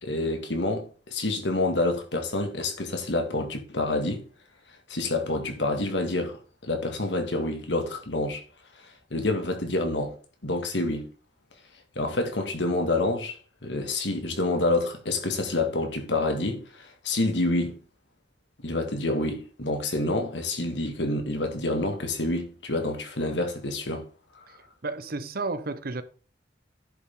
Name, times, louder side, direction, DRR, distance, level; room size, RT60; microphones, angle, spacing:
voice 1, 0.0-4.2 4.9-8.4 9.1-10.2 10.4-11.1 12.0-17.8 18.6-24.0, left 2 dB, 80° left, 2.1 m, -28 dB
voice 2, 24.8-26.0, right 3 dB, 55° right, 0.9 m, -32 dB
10.5 x 7.2 x 3.8 m
head